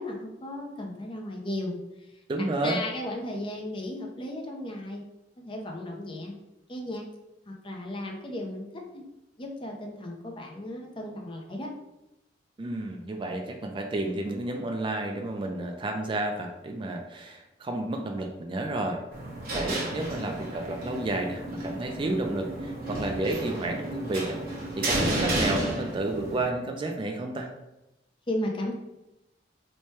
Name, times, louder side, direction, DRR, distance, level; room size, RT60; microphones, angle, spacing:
voice 1, 0.0-2.1 2.4-5.0 5.4-6.3 6.7-7.0 7.5-9.0 9.4-11.7 28.3-28.7, left 1 dB, 30° left, 1 dB, 0.6 m, -35 dB
voice 2, 2.3-2.8 12.6-19.0 19.5-24.4 24.8-27.5, right 2 dB, 30° right, 3 dB, 0.3 m, -31 dB
sound 1, 19.1-26.4, right 1 dB, 55° right, 1.1 m, -32 dB
3.2 x 2.2 x 4.2 m, 0.93 s
head